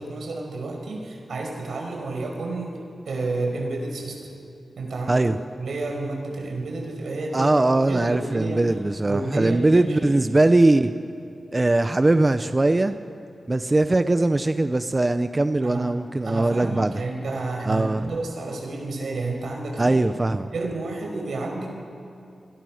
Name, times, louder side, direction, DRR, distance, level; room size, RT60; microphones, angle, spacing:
voice 1, 0.0-2.8 3.1-4.3 4.8-5.3 5.6-7.6 7.9-8.7 9.0-10.2 15.6-15.9 16.2-20.0 20.5-21.7, right 2 dB, 85° right, 1 dB, 5.6 m, -30 dB
voice 2, 7.3-10.9 11.5-12.9 13.5-17.0 17.6-18.0 19.8-20.5, right 2 dB, 25° right, 10 dB, 0.7 m, -20 dB
29.5 x 22.0 x 6.5 m, 2.5 s
wide cardioid pair, 120°, 0 cm